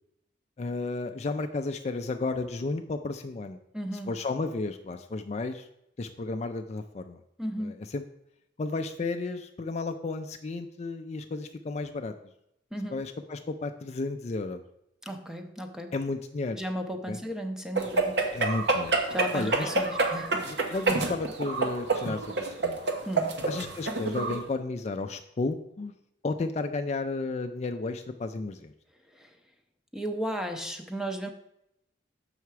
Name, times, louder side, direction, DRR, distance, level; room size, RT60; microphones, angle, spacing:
voice 1, 0.6-3.6 4.1-5.7 6.0-7.2 7.6-8.0 8.6-12.1 12.9-14.6 15.9-16.6 17.1-17.2 18.3-19.0 19.3-19.7 20.4-22.8 23.5-25.9 26.2-28.7, left 3 dB, 35° left, 6 dB, 0.4 m, -33 dB
voice 2, 3.7-4.1 7.4-7.8 12.7-13.0 15.0-15.9 16.6-18.2 19.1-20.5 23.0-23.5 29.1-29.4 29.9-31.3, equal, 5° right, 5 dB, 0.6 m, -35 dB
sound 1, 17.8-24.4, right 3 dB, 60° right, 1.0 m, -28 dB
7.0 x 5.7 x 4.6 m, 0.81 s
head